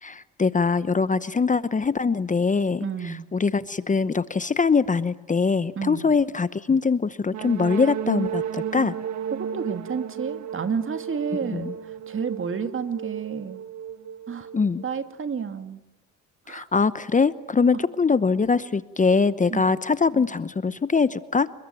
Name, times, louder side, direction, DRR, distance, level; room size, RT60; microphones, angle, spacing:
voice 1, 0.0-8.9 11.5-11.7 14.5-14.8 16.5-21.5, left 4 dB, 25° left, 15 dB, 0.9 m, -23 dB
voice 2, 2.8-3.3 5.8-6.1 9.3-11.7 12.1-13.6 14.3-14.5 14.8-15.8 16.5-16.6 19.5-19.8, right 6 dB, 45° right, 9 dB, 2.3 m, -30 dB
sound 1, 7.3-15.0, right 9 dB, 65° right, 1.7 m, -33 dB
29.5 x 21.5 x 9.1 m, 0.99 s
cardioid pair, 90°, 30 cm